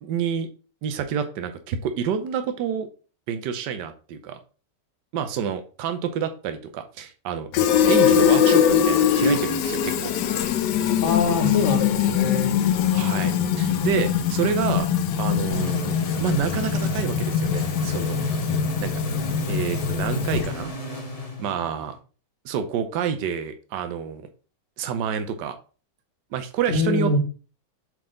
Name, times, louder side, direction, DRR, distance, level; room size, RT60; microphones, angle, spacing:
voice 1, 0.0-0.5 0.8-2.9 3.3-4.4 5.1-7.5 7.9-10.1 12.9-14.9 15.2-18.2 18.8-18.9 19.5-20.7 21.4-21.9 22.4-24.2 24.8-25.6 26.3-27.2, right 8 dB, 80° right, 1.4 m, -28 dB
Fill (with liquid), 7.5-20.6, left 8 dB, 75° left, 1.2 m, -22 dB
voice 2, 11.0-12.6 26.7-27.2, left 3 dB, 50° left, 1.3 m, -24 dB
sound 1, 15.5-22.0, right 2 dB, 25° left, 1.2 m, -34 dB
7.6 x 3.9 x 3.8 m
omnidirectional pair, 1.9 m